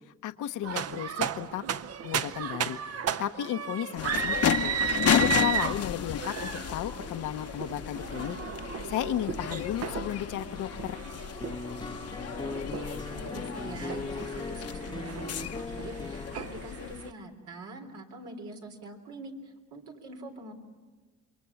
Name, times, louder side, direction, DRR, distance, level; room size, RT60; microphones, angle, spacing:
voice 1, 0.2-1.6 2.0-2.8 3.2-4.7 5.1-8.4 8.8-11.0, left 11 dB, 80° left, 8 dB, 1.0 m, -33 dB
sound 1, 0.6-17.1, right 8 dB, 55° right, 0.8 m, -35 dB
sound 2, 4.0-17.1, left 9 dB, 55° left, 0.9 m, -33 dB
sound 3, 11.4-16.5, left 3 dB, 15° left, 0.9 m, -39 dB
voice 2, 12.4-20.5, right 2 dB, 85° right, 2 dB, 3.7 m, -44 dB
28.5 x 23.0 x 7.1 m, 1.4 s
cardioid pair, 90°, 30 cm